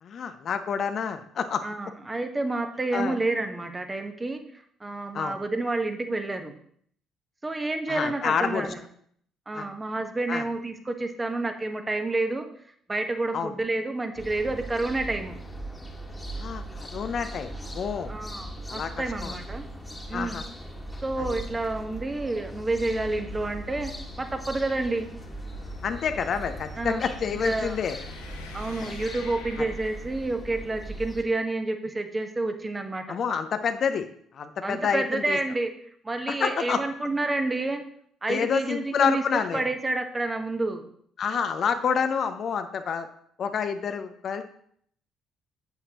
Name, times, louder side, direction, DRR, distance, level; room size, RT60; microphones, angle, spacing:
voice 1, 0.0-1.6 2.9-3.2 5.1-5.4 7.9-8.7 9.5-9.6 10.3-10.4 13.3-13.5 16.4-18.1 18.7-18.9 19.2-19.3 20.1-20.4 21.2-21.3 25.8-28.0 29.6-29.7 33.1-34.1 34.3-35.4 36.3-36.8 38.3-39.7 41.2-43.1 43.4-44.4, left 7 dB, 50° left, 8 dB, 0.6 m, -28 dB
voice 2, 1.6-4.4 4.8-6.5 7.4-8.8 9.5-12.5 12.9-15.4 18.1-19.7 20.1-20.4 21.0-23.9 24.2-25.1 26.8-27.0 27.4-27.8 28.5-33.2 34.6-35.7 36.0-37.8 38.2-39.2 39.5-40.8, right 2 dB, 20° right, 6 dB, 1.1 m, -29 dB
sound 1, 14.2-31.2, right 1 dB, 15° left, 1.6 m, -39 dB
sound 2, 19.8-30.6, left 2 dB, 75° left, 1.1 m, -47 dB
8.3 x 8.1 x 2.9 m, 0.63 s
figure-of-eight pair, 50°, 0 cm